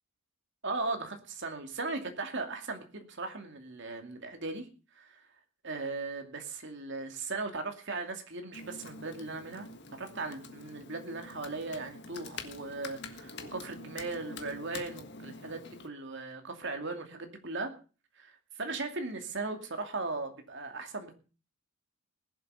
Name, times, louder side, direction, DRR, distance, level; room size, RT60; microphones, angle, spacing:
voice 1, 0.6-4.7 4.9-5.2 5.6-9.7 10.0-17.7 18.2-18.3 18.6-21.1, right 3 dB, 55° right, 5 dB, 2.5 m, -38 dB
Computer keyboard, 8.5-15.9, left 3 dB, 50° left, 1.5 m, -46 dB
20.0 x 7.8 x 5.6 m, 0.36 s
head